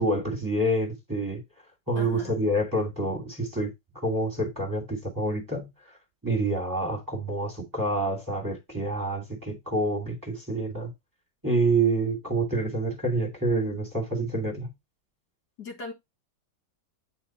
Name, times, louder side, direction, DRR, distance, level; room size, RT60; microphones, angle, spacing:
voice 1, 0.0-1.4 1.9-5.7 6.2-10.9 11.4-14.7, right 2 dB, 10° right, 2.1 m, -27 dB
voice 2, 2.0-2.4 15.6-15.9, left 3 dB, 60° left, 2.1 m, -39 dB
9.0 x 4.0 x 4.2 m
omnidirectional pair, 2.1 m